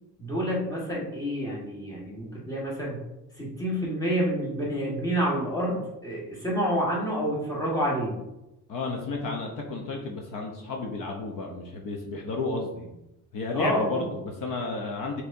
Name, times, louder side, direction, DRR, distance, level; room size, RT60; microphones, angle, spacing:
voice 1, 0.2-3.0 3.3-8.2 13.5-14.1, equal, 10° left, -5 dB, 1.3 m, -28 dB
voice 2, 8.7-12.9 13.3-15.2, left 3 dB, 65° left, 2 dB, 0.7 m, -32 dB
4.6 x 4.1 x 2.6 m, 0.92 s
cardioid pair, 150°, 35 cm